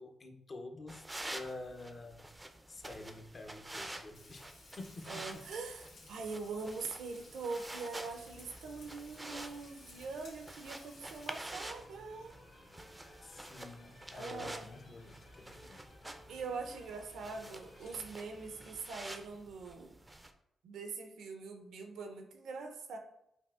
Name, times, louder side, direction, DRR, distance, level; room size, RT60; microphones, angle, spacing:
voice 1, 0.0-2.2 2.7-4.5 4.8-5.5 13.2-15.9, left 2 dB, 45° left, 5 dB, 0.5 m, -48 dB
sound 1, 0.9-20.3, right 1 dB, 15° right, 0.4 m, -49 dB
Frying (food), 4.1-11.7, left 2 dB, 80° left, 1.2 m, -58 dB
voice 2, 5.1-12.3 14.1-14.7 15.6-15.8 16.3-20.0 20.6-23.0, right 4 dB, 80° right, 5 dB, 0.5 m, -43 dB
sound 2, 8.1-18.8, left 1 dB, 65° left, 0.9 m, -59 dB
5.3 x 2.4 x 2.4 m, 0.79 s
cardioid pair, 80°, 0 cm